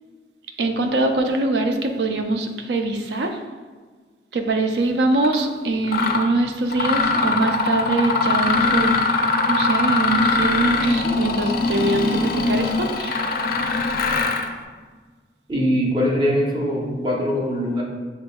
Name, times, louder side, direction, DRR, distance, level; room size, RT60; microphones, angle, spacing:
voice 1, 0.6-3.4 4.3-9.0 9.5-13.3, right 2 dB, 65° right, 5 dB, 0.4 m, -23 dB
Mechanisms, 5.2-5.4 5.9-6.3 6.7-14.5, left 3 dB, 55° left, 0.4 m, -21 dB
voice 2, 15.5-17.8, equal, 25° right, -3 dB, 0.8 m, -22 dB
6.5 x 3.3 x 2.3 m, 1.5 s
head